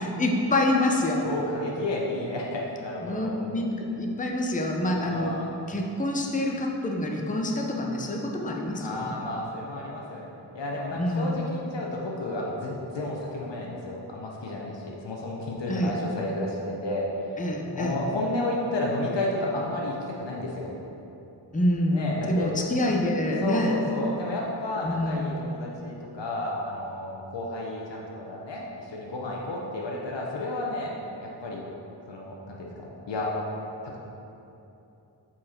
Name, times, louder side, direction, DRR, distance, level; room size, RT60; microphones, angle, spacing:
voice 1, 0.2-1.2 3.0-5.3 5.7-9.1 10.9-11.4 15.7-15.9 17.4-18.0 21.5-23.8 24.8-25.4, left 1 dB, 20° left, 0 dB, 0.7 m, -26 dB
voice 2, 1.2-3.3 4.9-5.5 8.8-17.1 17.7-20.7 21.9-22.5 23.4-30.9 31.2-31.6 32.1-33.3 33.8-34.0, left 2 dB, 75° left, -3 dB, 0.9 m, -32 dB
7.4 x 4.3 x 4.3 m, 2.9 s
wide cardioid pair, 60°, 44 cm